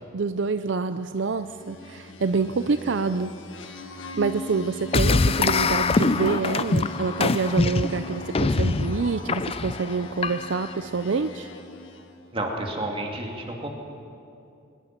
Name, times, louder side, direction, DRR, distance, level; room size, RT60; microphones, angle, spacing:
voice 1, 0.1-3.3 4.2-11.5, right 4 dB, 70° right, 11 dB, 0.5 m, -27 dB
sound 1, 1.3-12.2, left 1 dB, 85° left, 1.6 m, -39 dB
sound 2, 4.9-10.7, left 3 dB, 30° left, 0.5 m, -24 dB
voice 2, 12.3-13.7, right 1 dB, 30° right, 1 dB, 2.5 m, -30 dB
21.5 x 20.5 x 6.0 m, 2.6 s
head